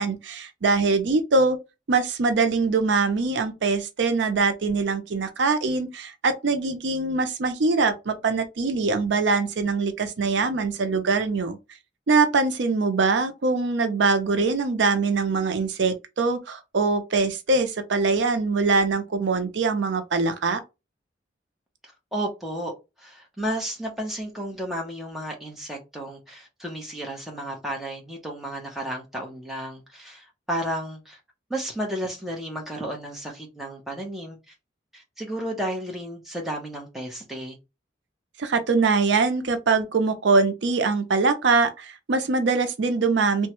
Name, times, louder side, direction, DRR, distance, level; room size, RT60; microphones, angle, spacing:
voice 1, 0.0-1.6 1.9-11.6 12.1-20.6 38.4-43.5, right 4 dB, 75° right, 0.5 m, -23 dB
voice 2, 22.1-22.7 23.0-31.2 31.5-34.5 34.9-37.6, right 1 dB, ahead, 0.8 m, -32 dB
3.0 x 2.2 x 2.9 m
head